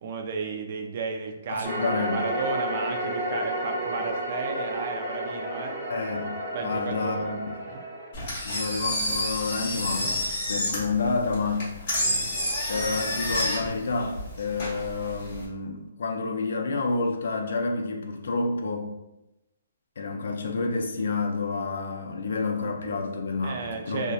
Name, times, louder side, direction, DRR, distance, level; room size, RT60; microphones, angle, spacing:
voice 1, 0.0-5.8 6.5-7.4 7.7-7.8 23.4-24.1, right 4 dB, 35° right, 4 dB, 0.3 m, -33 dB
voice 2, 1.5-2.2 5.9-6.3 6.6-7.6 8.4-10.2 10.5-11.7 12.7-18.9 20.0-24.1, left 3 dB, 65° left, 3 dB, 0.4 m, -29 dB
sound 1, 1.6-8.1, right 1 dB, 15° right, 0.9 m, -31 dB
Engine, 8.1-15.4, left 1 dB, 35° left, 0.9 m, -29 dB
2.6 x 2.1 x 2.2 m, 0.94 s
hypercardioid pair, 170°, 0 cm